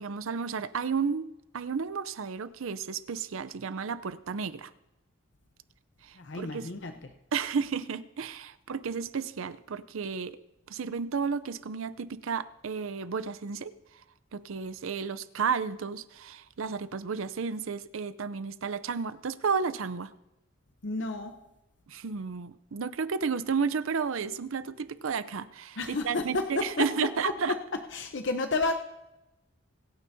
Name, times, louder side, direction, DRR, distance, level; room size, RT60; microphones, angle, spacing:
voice 1, 0.0-4.7 6.0-6.7 7.3-10.4 10.7-13.7 14.3-20.1 21.9-27.6, right 5 dB, 75° right, 15 dB, 0.6 m, -32 dB
voice 2, 6.2-6.9 20.8-21.3 25.8-26.9 27.9-28.7, left 3 dB, 60° left, 6 dB, 0.7 m, -31 dB
25.0 x 9.2 x 2.7 m, 0.94 s
head